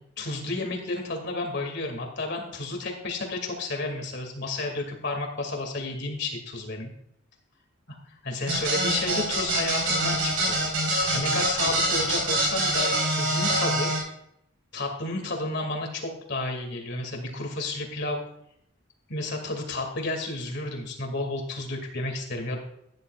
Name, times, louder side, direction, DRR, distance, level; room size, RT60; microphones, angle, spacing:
voice 1, 0.2-6.9 8.2-10.6 10.9-13.9 14.7-18.2 19.1-22.6, left 2 dB, 50° left, 2 dB, 2.4 m, -31 dB
sound 1, 8.5-14.0, right 1 dB, 85° right, 4.3 m, -25 dB
15.5 x 10.5 x 2.5 m, 0.74 s
head